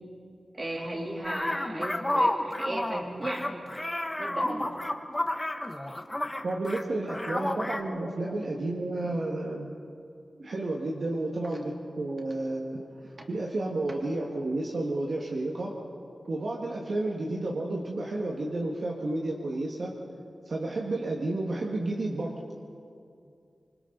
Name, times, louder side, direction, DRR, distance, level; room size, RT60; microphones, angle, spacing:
voice 1, 0.5-3.5 4.2-4.8 5.9-6.0 6.7-6.8 7.4-7.6 13.2-13.3, right 1 dB, 35° right, -1 dB, 3.0 m, -36 dB
sound 1, 1.2-6.8 7.1-7.8, left 1 dB, 15° left, 1.0 m, -31 dB
voice 2, 6.4-9.7 10.4-15.7 16.3-19.9 20.5-22.3, right 2 dB, 55° right, -2 dB, 1.7 m, -31 dB
26.5 x 25.0 x 4.0 m, 2.5 s
wide cardioid pair, 130°, 0 cm